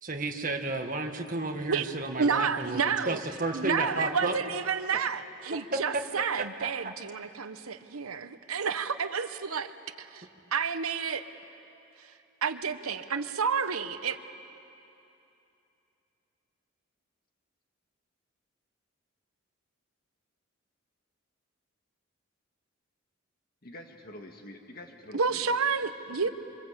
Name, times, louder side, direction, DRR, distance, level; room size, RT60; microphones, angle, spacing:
voice 1, 0.0-2.8 3.0-4.3 5.7-5.8, right 2 dB, 40° right, 3 dB, 1.6 m, -32 dB
voice 2, 2.1-3.2 3.5-9.7 10.0-11.2 12.0-12.1 12.4-14.2 25.1-26.3, right 5 dB, 90° right, 11 dB, 1.0 m, -30 dB
voice 3, 23.6-25.6 26.1-26.3, left 1 dB, 45° left, 3 dB, 1.8 m, -47 dB
26.5 x 26.0 x 8.1 m, 2.8 s
head